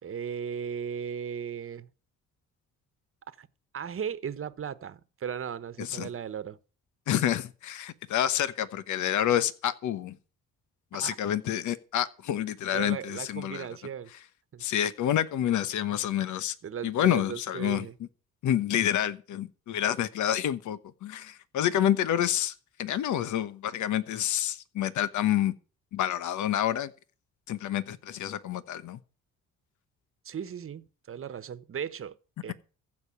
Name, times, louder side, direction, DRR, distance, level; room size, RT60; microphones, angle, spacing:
voice 1, 0.0-1.9 3.4-3.5 3.7-6.6 11.0-11.2 12.7-14.1 14.5-14.6 16.6-17.9 30.2-32.5, right 7 dB, 45° right, 1.2 m, -36 dB
voice 2, 5.8-6.1 7.1-10.2 10.9-13.7 14.6-16.5 16.8-17.9 18.4-25.5 25.9-26.9 27.5-29.0, left 11 dB, 75° left, 1.1 m, -28 dB
15.0 x 5.3 x 9.2 m
cardioid pair, 90°, 30 cm